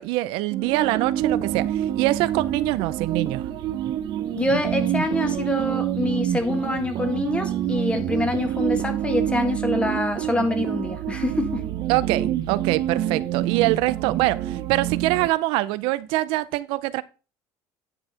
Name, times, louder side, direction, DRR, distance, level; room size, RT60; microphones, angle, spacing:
voice 1, 0.0-3.5 11.9-17.0, right 18 dB, 75° right, 0.5 m, -24 dB
sound 1, 0.5-15.3, right 11 dB, 55° right, 0.9 m, -27 dB
voice 2, 4.3-11.7, left 2 dB, 10° left, 1.8 m, -26 dB
9.9 x 4.7 x 5.7 m
cardioid pair, 120°, 9 cm